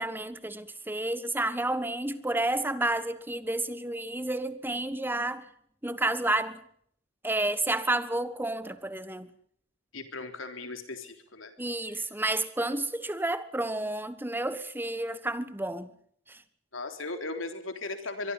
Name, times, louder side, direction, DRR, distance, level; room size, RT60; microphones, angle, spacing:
voice 1, 0.0-5.5 5.8-6.6 7.2-9.3 11.6-15.9 16.3-16.4, right 2 dB, 10° right, 1.3 m, -30 dB
voice 2, 9.9-11.5 11.9-12.1 16.7-18.3, left 3 dB, 80° left, 3.8 m, -37 dB
23.5 x 23.0 x 5.6 m
head